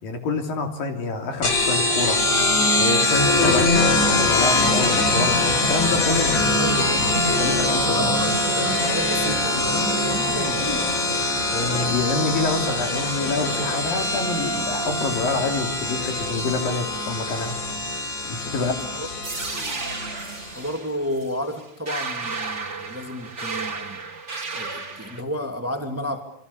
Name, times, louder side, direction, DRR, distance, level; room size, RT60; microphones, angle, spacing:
voice 1, 0.0-2.2 2.8-3.8 4.2-6.7 7.4-8.1 11.5-17.6 18.3-18.9, left 3 dB, 60° left, 5 dB, 4.7 m, -27 dB
sound 1, 1.4-20.6, left 2 dB, 45° left, 5.2 m, -23 dB
voice 2, 6.6-7.3 7.8-10.9 18.4-19.1 20.5-24.0 24.5-26.2, left 1 dB, 5° right, 6 dB, 1.7 m, -31 dB
sound 2, 19.2-25.2, right 4 dB, 25° right, 1.7 m, -33 dB
27.5 x 25.0 x 7.1 m, 0.66 s
omnidirectional pair, 4.7 m